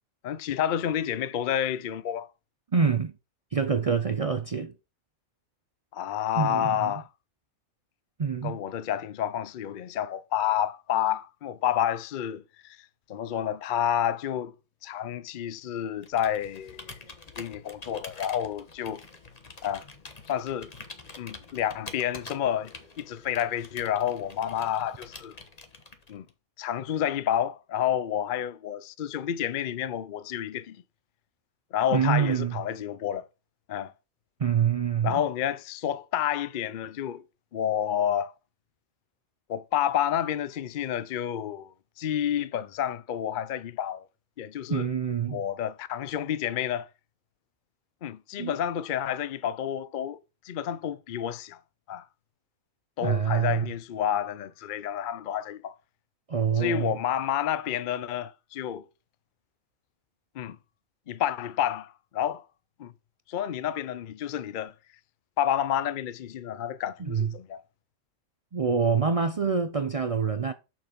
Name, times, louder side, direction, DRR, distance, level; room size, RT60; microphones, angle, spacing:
voice 1, 0.2-2.3 5.9-7.1 8.4-12.8 13.1-14.5 14.8-16.9 17.4-19.0 19.6-19.8 20.3-20.7 21.2-25.3 26.1-26.3 26.6-30.8 31.7-33.3 33.7-33.9 35.0-37.2 37.5-38.3 39.5-41.7 42.0-44.1 44.4-44.8 45.3-46.9 48.0-51.6 51.9-52.1 53.0-55.8 56.6-58.9 60.4-60.6 61.1-62.4 62.8-62.9 63.3-64.7 65.4-67.6, left 10 dB, 65° left, 0.5 m, -29 dB
voice 2, 2.7-3.1 3.5-4.7 6.4-6.9 8.2-8.6 31.9-32.6 34.4-35.2 44.7-45.4 48.4-48.6 53.0-53.7 56.3-56.9 67.0-67.3 68.5-70.5, right 6 dB, 65° right, 0.3 m, -26 dB
Computer keyboard, 16.0-26.3, left 3 dB, 30° left, 1.2 m, -46 dB
6.8 x 5.9 x 5.1 m
omnidirectional pair, 1.5 m